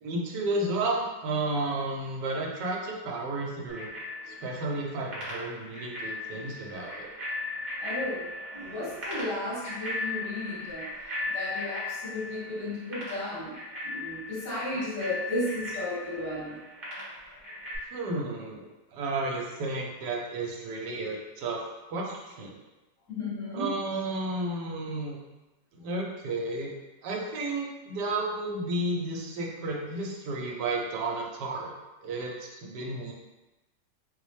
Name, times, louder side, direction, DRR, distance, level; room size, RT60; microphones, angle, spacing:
voice 1, 0.0-3.9 4.3-7.1 17.9-21.6 21.9-22.6 23.5-25.2 25.7-26.7 27.0-31.7 32.0-32.4 32.6-33.1, right 2 dB, 70° right, -1 dB, 1.2 m, -32 dB
Bicycle bell, 3.7-17.8, left 2 dB, 40° right, 0.9 m, -38 dB
voice 2, 7.8-10.9 11.3-13.5 13.8-16.6 23.1-23.8, left 1 dB, 80° left, -10 dB, 2.3 m, -34 dB
4.1 x 2.1 x 3.1 m, 1.1 s
omnidirectional pair, 1.9 m